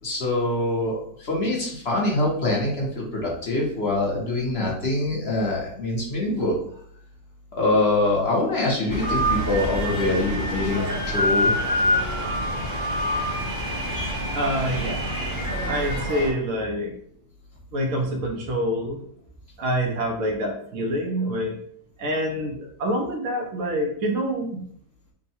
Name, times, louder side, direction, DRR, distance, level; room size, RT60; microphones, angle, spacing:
voice 1, 0.0-6.5 7.5-11.5, left 2 dB, 50° left, -3 dB, 1.1 m, -24 dB
sound 1, 8.9-16.3, equal, 15° left, 1.1 m, -26 dB
voice 2, 14.3-15.1 15.7-16.9 17.7-19.0 19.6-21.6 22.0-24.6, equal, 70° right, 1 dB, 1.1 m, -26 dB
3.6 x 2.2 x 4.2 m, 0.65 s
omnidirectional pair, 1.6 m